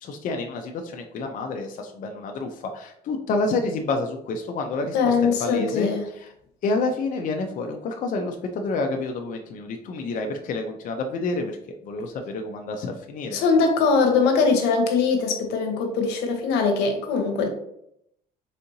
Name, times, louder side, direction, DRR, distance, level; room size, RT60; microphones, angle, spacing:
voice 1, 0.0-5.1 5.4-5.9 6.1-6.3 6.6-13.4, left 3 dB, 50° left, 3 dB, 0.5 m, -29 dB
voice 2, 4.9-6.1 13.3-17.5, left 4 dB, 90° left, 3 dB, 0.9 m, -21 dB
4.2 x 3.7 x 2.7 m, 0.75 s
cardioid pair, 110°, 17 cm